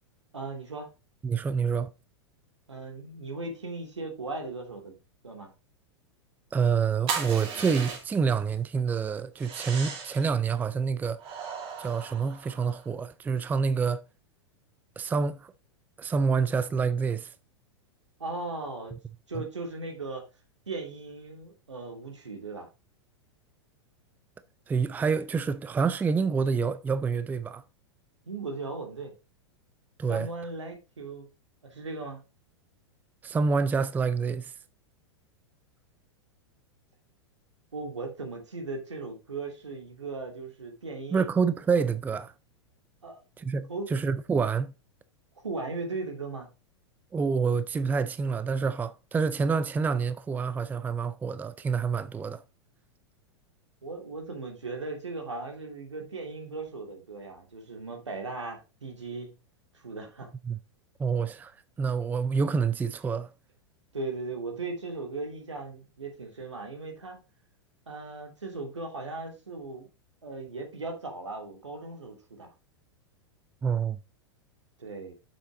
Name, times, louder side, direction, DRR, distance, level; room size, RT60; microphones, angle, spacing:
voice 1, 0.3-0.9 2.7-5.0 5.2-5.5 18.2-19.0 19.3-20.2 20.7-22.7 28.3-29.1 30.1-31.3 31.6-32.2 37.7-41.3 43.0-43.2 43.7-43.9 45.4-46.5 53.8-59.4 59.7-60.3 63.9-67.2 67.9-69.9 70.2-72.5 74.8-75.1, right 3 dB, 85° right, 2.8 m, -37 dB
voice 2, 1.2-1.9 6.5-11.2 11.8-14.0 15.0-15.5 16.0-17.3 19.3-19.4 24.7-27.6 30.0-30.3 33.2-34.5 41.1-42.3 43.4-44.7 47.1-52.4 60.5-60.6 61.0-63.3 73.6-74.0, right 5 dB, 10° right, 0.4 m, -27 dB
sound 1, 7.1-8.3 9.4-10.3 11.2-12.9, right 6 dB, 35° right, 2.5 m, -36 dB
7.1 x 6.9 x 3.9 m
figure-of-eight pair, 100°, 15 cm